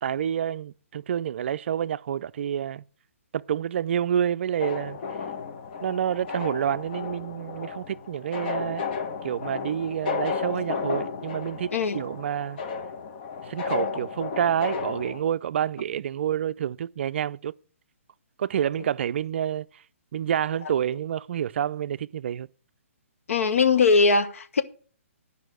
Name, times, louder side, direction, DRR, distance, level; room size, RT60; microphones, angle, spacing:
voice 1, 0.0-2.8 3.3-5.0 5.8-8.9 9.2-12.6 13.4-17.5 18.4-19.8 20.1-22.5, right 9 dB, 55° right, 0.4 m, -28 dB
sound 1, 4.6-15.2, left 5 dB, 40° left, 1.1 m, -33 dB
voice 2, 23.3-24.6, left 4 dB, 70° left, 1.2 m, -20 dB
11.0 x 5.4 x 7.7 m
hypercardioid pair, 145°, 8 cm